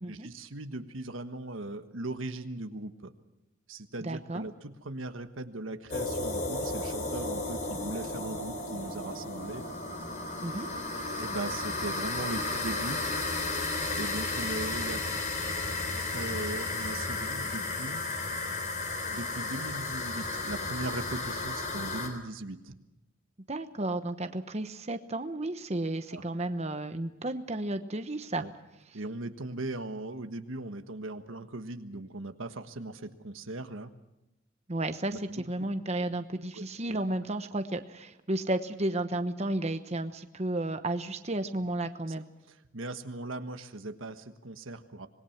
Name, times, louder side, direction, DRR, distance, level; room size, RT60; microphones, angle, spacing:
voice 1, 0.1-3.1 3.7-9.6 11.2-13.0 14.0-15.1 16.0-18.1 19.1-22.8 26.1-26.2 28.4-28.5 28.9-33.9 35.3-35.4 36.5-36.6 36.9-37.0 42.5-45.1, right 2 dB, 85° right, 8 dB, 1.4 m, -39 dB
voice 2, 4.0-4.4 10.4-10.7 23.5-28.4 34.7-42.2, right 1 dB, 35° right, 8 dB, 1.0 m, -33 dB
sound 1, 5.9-22.1, left 2 dB, 40° left, 3.7 m, -33 dB
26.0 x 20.5 x 5.9 m, 0.95 s
head